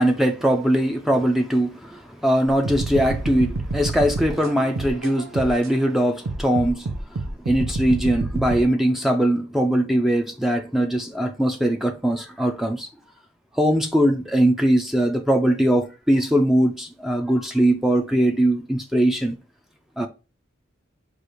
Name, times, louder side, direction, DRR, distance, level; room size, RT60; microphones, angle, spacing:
voice 1, 0.0-12.9 13.5-19.4 20.0-20.1, right 1 dB, ahead, 0.4 m, -21 dB
sound 1, 2.5-5.7 6.3-8.6, right 2 dB, 85° right, 0.7 m, -28 dB
4.8 x 2.4 x 4.5 m
head